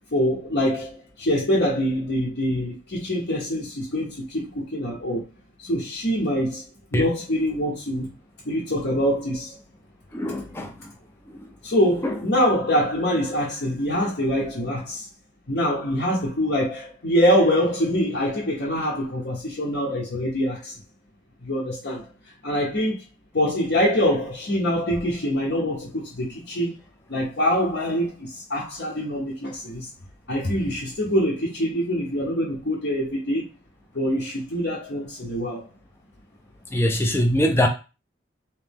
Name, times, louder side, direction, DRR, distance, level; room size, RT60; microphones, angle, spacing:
voice 1, 0.1-5.2 5.6-6.6 6.9-8.1 8.4-9.6 11.6-15.1 15.5-20.7 21.4-22.1 22.4-23.0 23.3-26.8 27.1-29.9 30.3-33.4 33.9-35.6, equal, 60° left, 0.9 m, -24 dB
voice 2, 10.1-10.7 12.0-12.2 36.7-37.7, equal, 10° left, 0.4 m, -22 dB
3.1 x 3.0 x 3.5 m
head